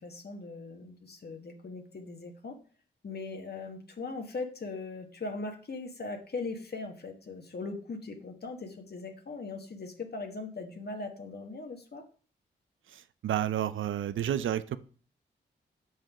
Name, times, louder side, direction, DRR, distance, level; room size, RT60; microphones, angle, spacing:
voice 1, 0.0-2.6 3.0-12.0, left 3 dB, 55° left, 4 dB, 1.2 m, -40 dB
voice 2, 12.9-14.8, right 11 dB, 80° right, 14 dB, 0.5 m, -31 dB
5.8 x 5.4 x 4.9 m, 0.42 s
cardioid pair, 50°, 20 cm